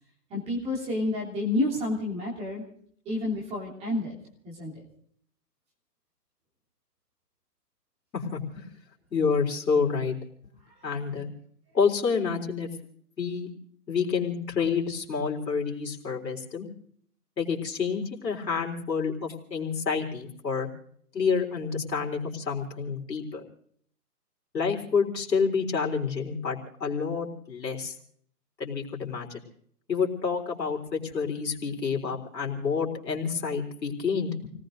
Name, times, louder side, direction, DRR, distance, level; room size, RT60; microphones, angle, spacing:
voice 1, 0.3-2.6 3.0-4.1 4.4-4.8, left 2 dB, 10° right, -3 dB, 3.1 m, -29 dB
voice 2, 8.1-8.7 9.1-10.1 10.8-11.3 11.7-12.7 13.2-13.5 13.9-16.7 17.4-20.7 21.1-23.4 24.5-28.0 28.6-29.4 29.9-34.5, left 5 dB, 80° left, 0 dB, 3.9 m, -28 dB
29.0 x 18.5 x 2.6 m, 0.62 s
hypercardioid pair, 155°, 50 cm